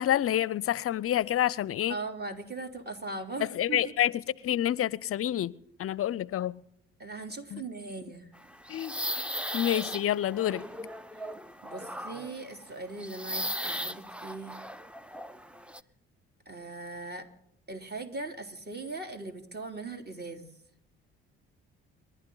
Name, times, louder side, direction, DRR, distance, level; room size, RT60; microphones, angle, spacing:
voice 1, 0.0-1.9 3.5-4.1 4.4-5.5 5.8-6.6 7.5-7.6 8.7-9.2 9.5-10.6, left 11 dB, 50° left, 0.6 m, -28 dB
voice 2, 1.9-3.9 7.0-8.3 11.1-11.3 11.6-14.6 16.4-17.3 17.7-20.5, right 3 dB, 35° right, 3.1 m, -39 dB
sound 1, 8.3-15.8, equal, 5° right, 0.7 m, -37 dB
29.5 x 11.5 x 3.9 m
hypercardioid pair, 55°, 30 cm